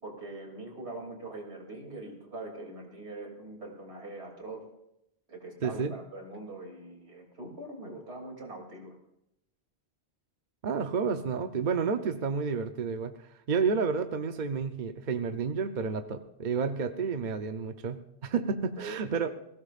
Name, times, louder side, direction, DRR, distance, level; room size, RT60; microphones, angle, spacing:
voice 1, 0.0-4.7 5.3-9.0 18.8-19.3, right 2 dB, 85° right, 0 dB, 3.3 m, -42 dB
voice 2, 5.6-5.9 10.6-13.1 13.5-19.3, right 5 dB, 50° right, 7 dB, 0.8 m, -30 dB
21.0 x 16.0 x 2.5 m, 0.82 s
omnidirectional pair, 1.1 m